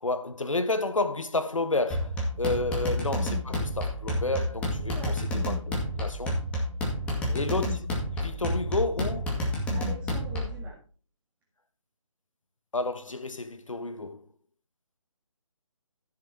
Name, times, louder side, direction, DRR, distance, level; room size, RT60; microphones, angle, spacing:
voice 1, 0.0-5.6 5.9-6.4 7.3-7.7 8.2-9.3 12.7-14.2, left 2 dB, 70° left, 1.2 m, -30 dB
sound 1, 1.9-10.6, left 1 dB, 5° left, 2.1 m, -30 dB
voice 2, 7.0-7.5 9.7-10.8, right 3 dB, 10° right, 1.8 m, -44 dB
14.5 x 6.8 x 4.4 m
figure-of-eight pair, 150°, 17 cm